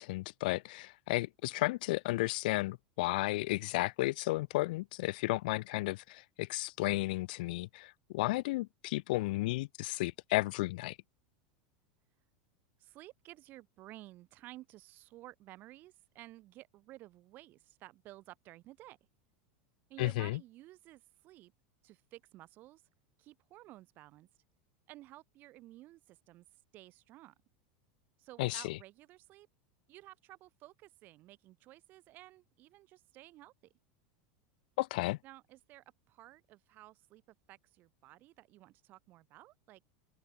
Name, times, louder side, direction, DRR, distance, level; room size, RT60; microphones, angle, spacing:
voice 1, 0.0-11.0 20.0-20.4 28.4-28.8 34.8-35.2, left 20 dB, 70° left, 0.4 m, -33 dB
voice 2, 12.8-19.0 19.9-21.5 21.8-22.8 23.2-24.3 24.9-26.5 26.7-27.4 28.2-29.5 29.9-33.7 35.2-39.8, right 17 dB, 40° right, 3.5 m, -54 dB
open air
supercardioid pair, 150°, 5 cm